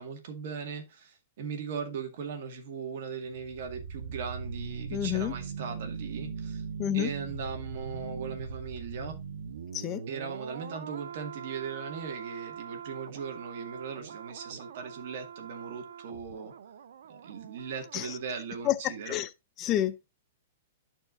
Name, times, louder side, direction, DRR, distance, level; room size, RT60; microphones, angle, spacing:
voice 1, 0.0-6.7 6.9-9.2 10.1-16.5 17.1-19.2, right 6 dB, 60° right, 1.9 m, -39 dB
sound 1, 3.2-18.2 18.5-18.6, right 6 dB, 80° right, 0.7 m, -41 dB
voice 2, 4.9-5.3 6.8-7.1 9.7-10.0 17.9-18.2 18.6-19.3 19.6-20.1, left 12 dB, 30° left, 0.4 m, -29 dB
12.5 x 4.5 x 2.6 m
hypercardioid pair, 150°, 0 cm